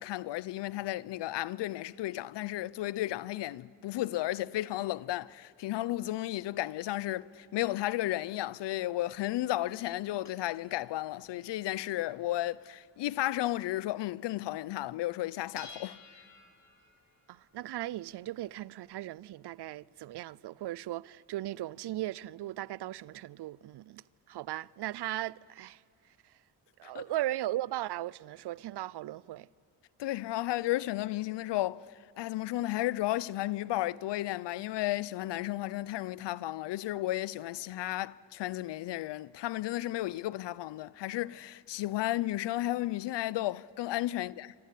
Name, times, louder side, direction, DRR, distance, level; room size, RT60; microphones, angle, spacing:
voice 1, 0.0-16.0 26.8-27.0 30.0-31.8 32.2-44.5, left 15 dB, 85° left, 0.7 m, -33 dB
sound 1, 10.2-14.3 14.6-14.7 15.0-19.8, left 4 dB, 40° left, 3.5 m, -57 dB
voice 2, 17.3-25.8 26.8-29.5, right 14 dB, 70° right, 0.6 m, -37 dB
27.5 x 25.0 x 8.4 m
cardioid pair, 80°, 41 cm